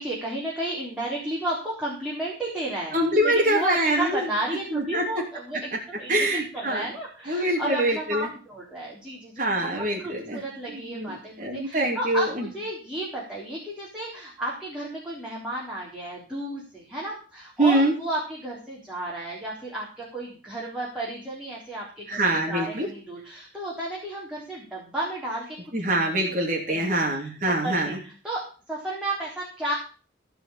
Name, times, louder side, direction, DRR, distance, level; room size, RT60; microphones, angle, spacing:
voice 1, 0.0-6.3 6.5-22.2 22.5-25.6 26.3-26.4 26.7-27.3 27.6-29.7, right 1 dB, 5° right, -6 dB, 3.7 m, -33 dB
voice 2, 2.9-4.3 4.7-5.0 6.1-6.9 7.3-8.3 9.4-10.4 10.7-12.5 17.6-17.9 22.1-22.9 25.7-28.0, right 1 dB, 45° right, -1 dB, 2.8 m, -24 dB
16.0 x 5.6 x 7.2 m, 0.38 s
head